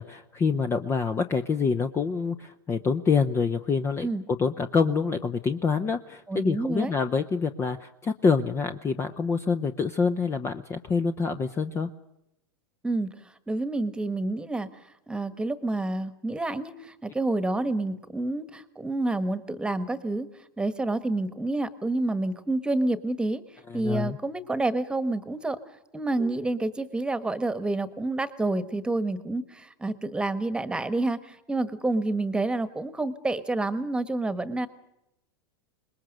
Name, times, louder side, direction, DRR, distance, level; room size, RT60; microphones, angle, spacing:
voice 1, 0.0-4.1 4.4-11.9 23.7-24.2 26.2-26.3, left 5 dB, 20° left, 9 dB, 0.9 m, -26 dB
voice 2, 6.3-6.9 12.8-14.7 15.1-20.3 20.6-25.6 25.9-34.7, right 2 dB, 5° right, 13 dB, 1.5 m, -28 dB
26.0 x 21.0 x 6.6 m, 0.85 s
hypercardioid pair, 115°, 12 cm